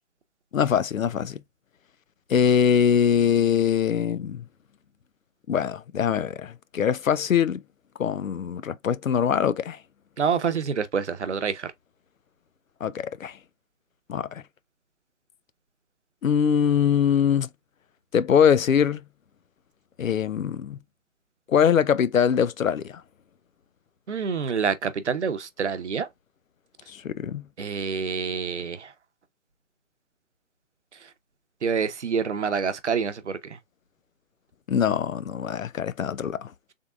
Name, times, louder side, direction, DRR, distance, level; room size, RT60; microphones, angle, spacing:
voice 1, 0.5-1.4 2.3-4.4 5.5-7.6 8.0-9.8 12.8-13.4 14.1-14.4 16.2-17.5 18.1-19.1 20.0-20.8 21.5-23.0 26.9-27.5 34.7-36.5, left 8 dB, 80° left, 0.6 m, -23 dB
voice 2, 10.2-11.7 24.1-26.1 27.6-28.9 31.6-33.4, right 6 dB, 60° right, 0.8 m, -27 dB
3.7 x 3.6 x 2.3 m
figure-of-eight pair, 160°, 39 cm